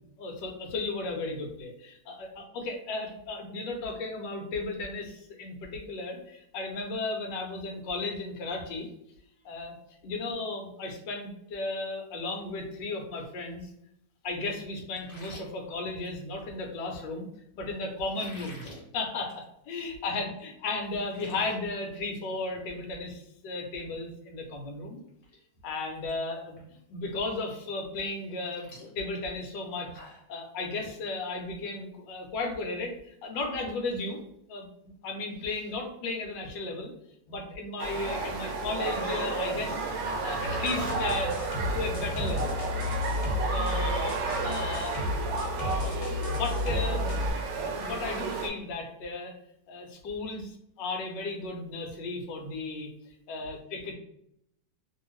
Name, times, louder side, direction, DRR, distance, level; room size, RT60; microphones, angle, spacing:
voice 1, 0.2-8.9 9.4-9.8 10.0-13.7 14.2-17.3 17.6-18.6 18.9-25.0 25.6-26.6 26.9-28.7 28.9-30.0 30.3-34.2 34.5-34.7 35.0-36.9 37.3-39.9 40.2-41.3 41.7-42.6 43.5-45.5 45.8-47.3 47.7-49.3 49.7-52.9 53.3-53.9, left 3 dB, 70° left, 2 dB, 1.3 m, -35 dB
sound 1, 15.0-16.5 18.0-18.8 19.2-19.4 19.8-19.9 20.4-20.5 20.8-21.5 21.9-22.2 22.5-22.7 24.5-24.6 25.1-25.4 25.6-26.1 26.6-26.7 28.0-30.3, left 1 dB, 40° left, 1.2 m, -50 dB
sound 2, 37.8-48.5, right 3 dB, 75° right, 1.2 m, -32 dB
sound 3, 40.4-47.3, left 3 dB, 90° left, 1.5 m, -32 dB
3.0 x 2.7 x 3.0 m, 0.76 s
omnidirectional pair, 2.1 m